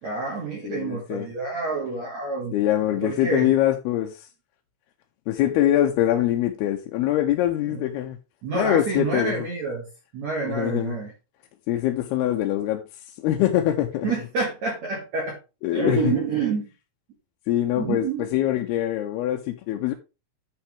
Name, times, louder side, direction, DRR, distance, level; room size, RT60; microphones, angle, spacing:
voice 1, 0.0-2.6 3.0-3.5 7.7-7.8 8.4-9.9 10.1-11.1 14.0-15.4 15.7-16.6 17.8-18.3, right 4 dB, 55° right, 2.5 m, -28 dB
voice 2, 0.6-1.3 2.5-4.2 5.3-8.2 8.5-9.3 10.5-11.0 11.7-12.8 13.2-14.1 15.6-16.1 17.5-19.9, left 13 dB, 85° left, 2.7 m, -23 dB
9.2 x 5.7 x 3.5 m
omnidirectional pair, 4.6 m